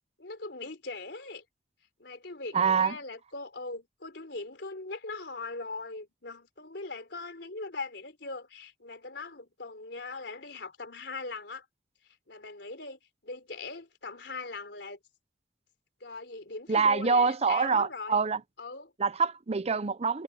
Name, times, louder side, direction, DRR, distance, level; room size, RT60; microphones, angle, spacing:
voice 1, 0.2-1.4 2.0-11.7 12.3-15.0 16.0-18.2 18.6-18.9, left 3 dB, 75° left, 4.0 m, -40 dB
voice 2, 2.5-3.0 16.7-18.4 19.0-20.2, right 5 dB, 35° right, 0.7 m, -25 dB
head